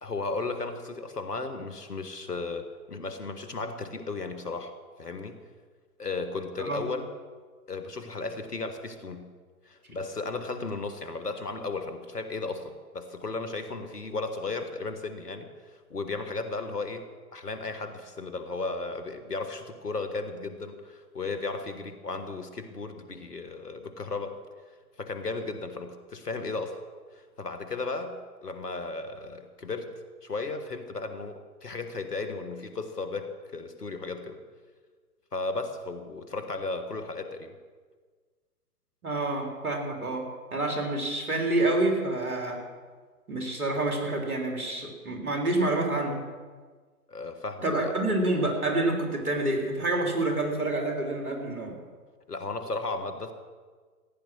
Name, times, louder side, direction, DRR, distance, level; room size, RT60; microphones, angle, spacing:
voice 1, 0.0-5.4 6.0-7.1 7.7-9.3 9.7-24.4 25.0-26.8 27.1-29.9 30.2-34.4 35.3-37.5 47.1-47.9 52.3-53.3, left 3 dB, 80° left, 8 dB, 1.6 m, -35 dB
voice 2, 39.0-40.2 40.5-42.6 43.3-46.2 47.6-51.8, right 2 dB, 65° right, 1 dB, 3.4 m, -28 dB
15.5 x 9.8 x 6.3 m, 1.5 s
figure-of-eight pair, 120°, 47 cm